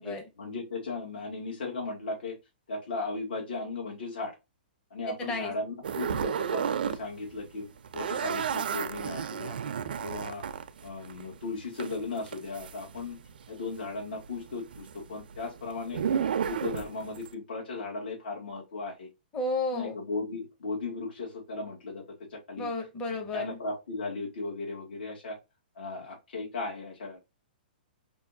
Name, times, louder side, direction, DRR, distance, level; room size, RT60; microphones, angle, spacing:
voice 1, 0.0-2.4 2.7-4.3 4.9-9.6 10.0-10.4 10.8-13.2 13.5-16.0 16.4-19.1 19.7-22.0 22.3-22.7 23.3-25.4 25.8-27.2, left 3 dB, 70° left, -2 dB, 2.0 m, -36 dB
voice 2, 5.1-5.5 19.3-19.9 22.6-23.6, left 2 dB, 15° left, 4 dB, 0.7 m, -32 dB
sound 1, 5.8-7.0 7.3-13.5 13.7-17.3, right 7 dB, 70° right, 0.5 m, -33 dB
5.3 x 2.6 x 2.6 m, 0.24 s
hypercardioid pair, 175°, 5 cm